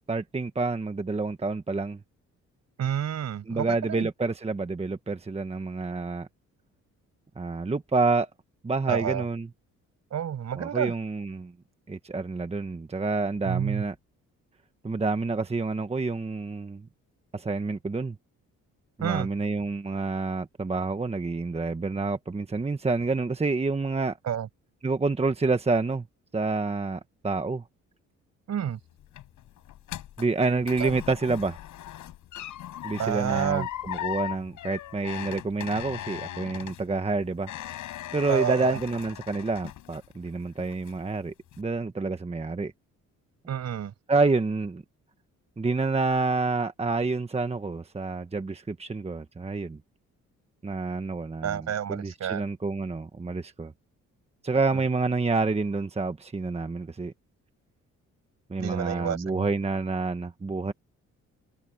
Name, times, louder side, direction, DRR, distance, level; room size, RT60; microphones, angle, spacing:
voice 1, 0.1-2.0 3.5-6.3 7.4-8.3 8.6-9.5 10.5-11.5 11.9-13.9 14.8-16.9 17.3-18.2 19.0-24.2 24.8-26.1 26.3-27.6 30.2-31.6 32.8-37.5 38.1-42.7 44.1-44.8 45.6-49.8 50.6-53.7 54.4-57.1 58.5-60.7, right 3 dB, 20° right, 1.4 m, -28 dB
voice 2, 2.8-4.1 8.9-9.2 10.1-10.9 13.4-13.8 19.0-19.3 24.3-24.5 28.5-28.8 30.8-30.9 33.0-33.7 38.3-38.8 43.5-43.9 51.4-52.4 58.6-59.5, right 9 dB, 60° right, 6.9 m, -29 dB
creaky door, 28.7-40.3 40.6-41.1 41.5-41.6, left 13 dB, 80° left, 4.7 m, -39 dB
cardioid pair, 90°, 30 cm